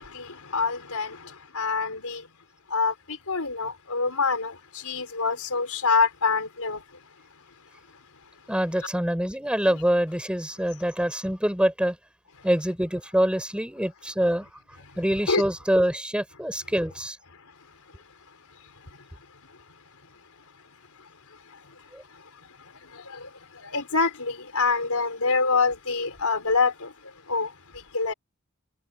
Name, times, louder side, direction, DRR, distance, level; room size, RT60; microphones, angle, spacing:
voice 1, 0.0-2.3 2.7-6.8 15.3-15.4 22.8-28.1, left 4 dB, 80° left, 4.5 m, -26 dB
voice 2, 8.5-11.9 12.4-14.5 15.0-17.2 21.9-22.0, equal, 5° right, 5.1 m, -25 dB
head